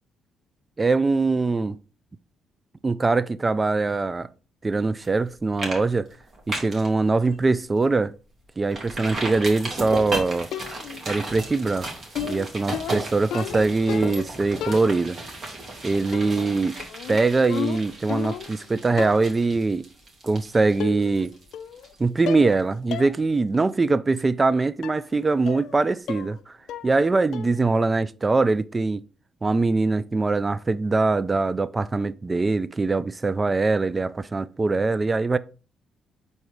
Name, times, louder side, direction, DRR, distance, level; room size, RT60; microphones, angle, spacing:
voice 1, 0.8-1.8 2.8-4.3 4.6-6.1 6.5-8.1 8.6-10.5 11.1-11.9 12.2-15.2 15.8-16.8 17.1-19.8 20.2-21.3 22.0-26.5 26.8-29.0 29.4-35.4, right 3 dB, 25° right, 0.4 m, -22 dB
sound 1, 5.0-5.3 5.6-5.8 6.1-6.9 7.3-7.4 7.8-7.9 8.7-22.3 22.6-22.7, right 2 dB, 50° right, 2.1 m, -35 dB
sound 2, 10.5-11.1 12.1-14.3 14.6-15.3 16.1-16.5 16.8-18.6 19.0-19.4 20.3-20.4 20.8-21.3 21.5-21.9 22.3-22.6 22.9-23.1 23.5-23.6 24.8-25.1 25.5-25.8 26.1-26.4 26.7-27.1 27.3-27.7, left 9 dB, 80° left, 0.5 m, -34 dB
5.0 x 4.2 x 4.6 m
cardioid pair, 90°, 0 cm